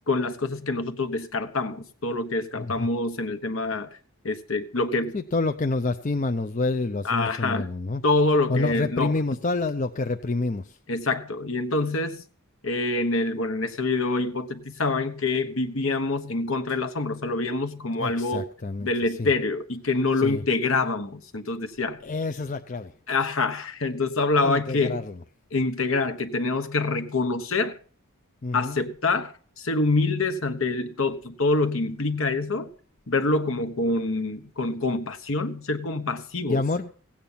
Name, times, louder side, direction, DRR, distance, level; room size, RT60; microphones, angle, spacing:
voice 1, 0.1-4.0 4.2-5.1 7.0-7.7 8.0-9.1 10.9-12.2 12.6-18.4 18.8-22.0 23.1-25.1 25.5-27.7 28.5-32.7 33.1-36.6, left 3 dB, 65° left, 1.2 m, -26 dB
voice 2, 2.6-2.9 5.1-8.0 8.5-10.8 18.0-19.3 20.2-20.4 22.0-22.9 24.4-25.2 28.4-28.8 36.5-36.9, left 3 dB, 35° left, 0.5 m, -28 dB
16.5 x 8.8 x 5.6 m
head